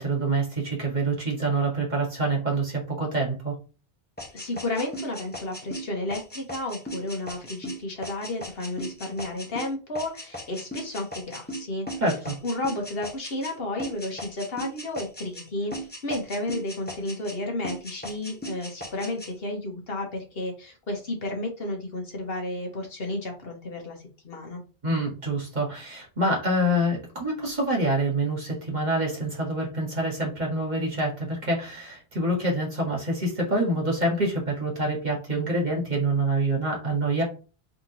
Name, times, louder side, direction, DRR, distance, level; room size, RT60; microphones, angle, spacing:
voice 1, 0.0-3.6 12.0-12.4 24.8-37.2, right 1 dB, 40° right, -2 dB, 1.8 m, -26 dB
sound 1, 4.2-13.5 13.8-15.5 15.7-17.4 17.6-19.3, equal, 10° left, 1.0 m, -38 dB
voice 2, 4.3-11.9 12.4-15.7 16.0-24.0 24.2-24.6, left 2 dB, 65° left, 1 dB, 1.4 m, -32 dB
3.7 x 3.4 x 2.9 m, 0.34 s
omnidirectional pair, 1.1 m